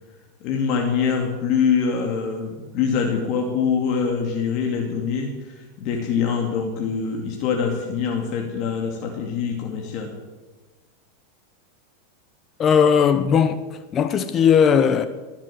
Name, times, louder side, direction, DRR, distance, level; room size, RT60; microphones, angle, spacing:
voice 1, 0.4-5.3 5.8-10.1, left 6 dB, 50° left, 2.5 m, -24 dB
voice 2, 12.6-13.6 13.9-15.1, left 7 dB, 30° left, 0.9 m, -17 dB
22.0 x 7.4 x 7.7 m
hypercardioid pair, 120°, 0 cm